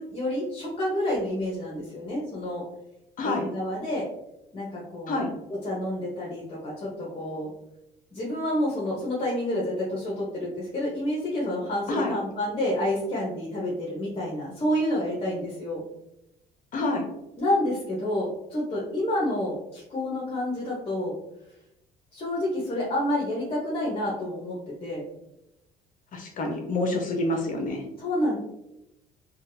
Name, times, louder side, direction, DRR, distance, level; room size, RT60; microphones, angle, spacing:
voice 1, 0.0-2.6 3.2-4.1 4.5-5.2 5.6-7.5 8.1-15.8 17.4-21.1 22.1-25.0 28.0-28.4, left 1 dB, 35° left, -5 dB, 1.0 m, -29 dB
voice 2, 16.7-17.0 26.1-27.8, left 2 dB, 50° left, 3 dB, 0.7 m, -27 dB
3.6 x 2.3 x 2.6 m, 0.86 s
supercardioid pair, 90°, 17 cm